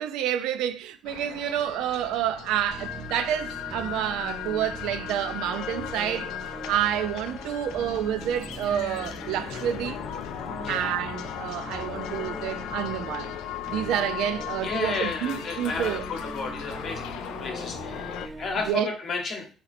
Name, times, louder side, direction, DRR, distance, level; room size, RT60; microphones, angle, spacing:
voice 1, 0.0-6.3 6.7-10.0 10.7-13.3 13.7-16.0 18.7-18.9, right 10 dB, 75° right, 0.3 m, -29 dB
sound 1, 1.0-18.3, left 12 dB, 80° left, 0.3 m, -37 dB
sound 2, 2.7-18.7, right 1 dB, ahead, 0.5 m, -40 dB
voice 2, 14.6-19.5, left 4 dB, 35° left, 0.9 m, -33 dB
4.0 x 2.8 x 4.1 m
cardioid pair, 170°, 0 cm